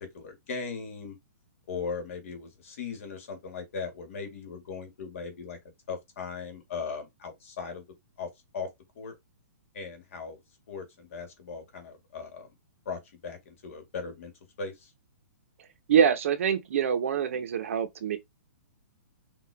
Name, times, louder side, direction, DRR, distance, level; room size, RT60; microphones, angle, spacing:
voice 1, 0.1-1.2 1.7-5.6 5.9-7.9 8.2-8.7 9.0-9.1 9.7-10.4 10.7-12.5 12.9-14.3 14.6-14.9, left 5 dB, 50° left, 2.0 m, -38 dB
voice 2, 15.9-18.2, right 8 dB, 50° right, 0.8 m, -25 dB
5.8 x 2.5 x 3.4 m
hypercardioid pair, 170°, 9 cm